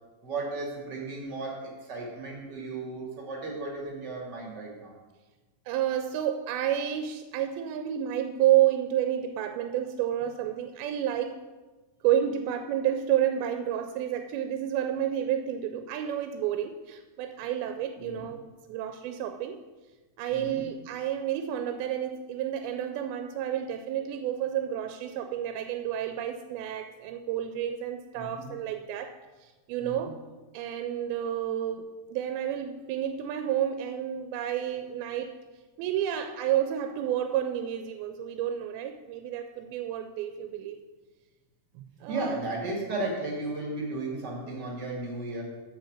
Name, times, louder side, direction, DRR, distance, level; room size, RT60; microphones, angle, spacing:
voice 1, 0.2-4.9 18.0-18.3 20.3-20.6 28.1-28.5 29.8-30.1 42.1-45.4, right 2 dB, 40° right, -2 dB, 1.8 m, -35 dB
voice 2, 5.7-11.4 12.0-19.6 20.2-29.1 29.4-30.2 30.5-35.4 35.8-40.8 41.8-42.4, right 11 dB, 90° right, 7 dB, 2.4 m, -30 dB
7.2 x 5.6 x 7.3 m, 1.3 s
omnidirectional pair, 4.2 m